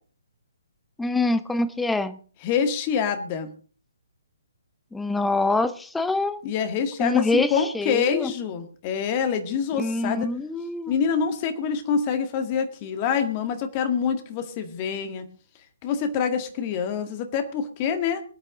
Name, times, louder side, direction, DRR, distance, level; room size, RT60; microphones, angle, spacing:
voice 1, 1.0-2.2 4.9-6.4 7.0-8.3 9.8-10.9, left 2 dB, 5° left, 14 dB, 0.9 m, -25 dB
voice 2, 2.4-3.5 6.4-10.3 10.9-15.2 15.8-18.2, left 7 dB, 30° left, 8 dB, 1.9 m, -26 dB
22.5 x 9.9 x 3.9 m, 0.41 s
figure-of-eight pair, 135°, 0 cm